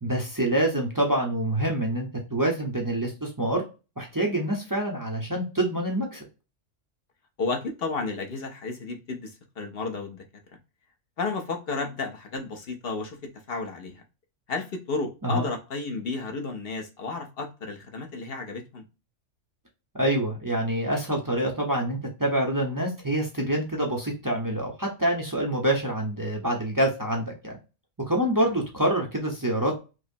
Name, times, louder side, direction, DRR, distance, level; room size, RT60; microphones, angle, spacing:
voice 1, 0.0-3.6 4.0-6.2 15.2-15.4 19.9-27.5 28.0-29.7, right 1 dB, 20° right, 0.5 m, -26 dB
voice 2, 7.4-10.2 11.2-14.0 14.5-18.8, left 3 dB, 55° left, 0.8 m, -32 dB
4.9 x 2.0 x 2.5 m
omnidirectional pair, 1.4 m